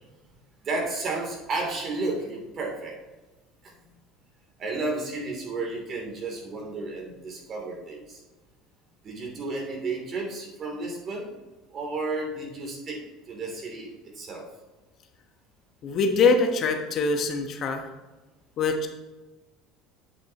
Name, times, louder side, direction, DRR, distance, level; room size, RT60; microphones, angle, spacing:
voice 1, 0.6-3.0 4.6-8.2 9.0-11.3 11.7-13.0 13.3-14.5, right 3 dB, 45° right, 0 dB, 2.9 m, -32 dB
voice 2, 15.8-17.9 18.6-18.9, left 4 dB, 50° left, 5 dB, 1.1 m, -23 dB
8.4 x 8.3 x 2.9 m, 1.1 s
supercardioid pair, 85°, 0 cm